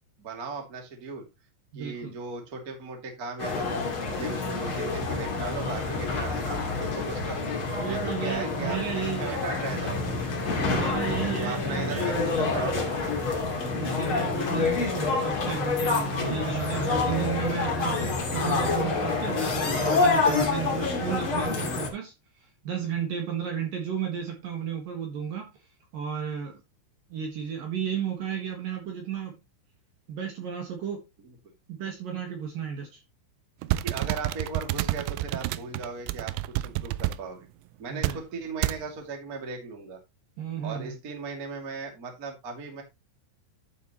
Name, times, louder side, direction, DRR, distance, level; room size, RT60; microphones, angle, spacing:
voice 1, 0.2-1.2 1.7-7.4 7.9-10.2 11.1-13.5 31.2-31.3 33.7-36.3 36.6-37.5 37.8-40.0 40.6-42.8, right 4 dB, 25° right, 2.1 m, -37 dB
voice 2, 1.7-2.1 7.7-9.4 10.7-12.1 13.8-18.0 18.3-25.5 25.9-26.6 27.1-29.3 30.1-31.0 31.7-33.0 37.9-38.2 40.4-41.0, right 8 dB, 55° right, 2.9 m, -33 dB
sound 1, 3.4-21.9, left 4 dB, 35° left, 2.6 m, -27 dB
sound 2, 33.6-37.2 38.0-38.2 38.6-38.8, right 16 dB, 80° right, 2.6 m, -29 dB
12.0 x 6.8 x 3.1 m
omnidirectional pair, 5.5 m